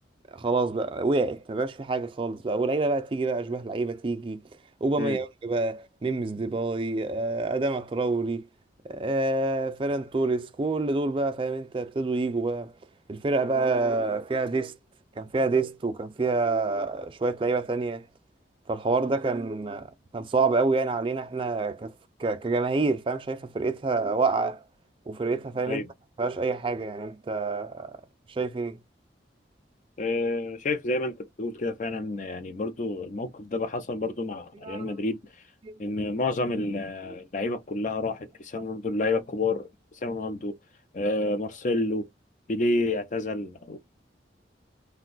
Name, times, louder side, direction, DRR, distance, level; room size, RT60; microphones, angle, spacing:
voice 1, 0.3-4.4 4.8-8.4 8.8-12.7 13.1-14.8 15.2-18.1 18.7-21.9 22.2-24.6 25.1-25.8 26.2-28.0 28.3-28.8 34.6-35.0 35.6-35.7, right 3 dB, 30° right, 0.4 m, -27 dB
voice 2, 30.0-35.2 35.8-39.7 40.0-40.5 40.9-42.1 42.5-43.8, left 2 dB, 45° left, 0.4 m, -29 dB
2.5 x 2.2 x 3.9 m
head